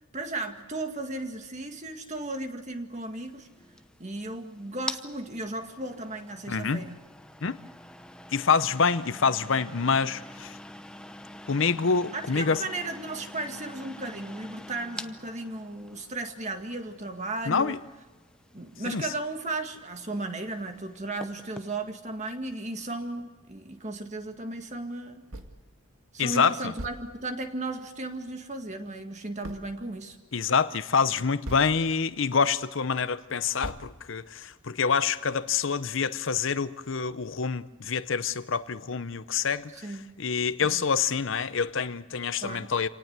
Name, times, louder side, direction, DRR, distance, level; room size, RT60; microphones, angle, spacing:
voice 1, 0.1-3.5 4.0-7.0 12.1-17.8 18.5-25.2 26.1-30.2 39.7-40.1 40.6-40.8 42.4-42.7, right 2 dB, 35° right, 5 dB, 2.0 m, -35 dB
sound 1, 3.0-21.7, left 1 dB, 5° left, 0.7 m, -46 dB
voice 2, 6.5-6.8 7.4-7.6 8.3-10.5 11.5-12.6 17.5-17.8 18.9-19.0 26.2-26.7 30.3-39.7 40.2-42.9, left 5 dB, 60° left, 14 dB, 0.7 m, -26 dB
sound 2, 25.3-25.7 26.2-26.3 26.8-27.5 29.4-29.9 31.4-32.1 32.6-32.7 33.6-34.4, right 1 dB, 75° right, 2.2 m, -41 dB
27.0 x 18.5 x 8.2 m, 1.3 s
head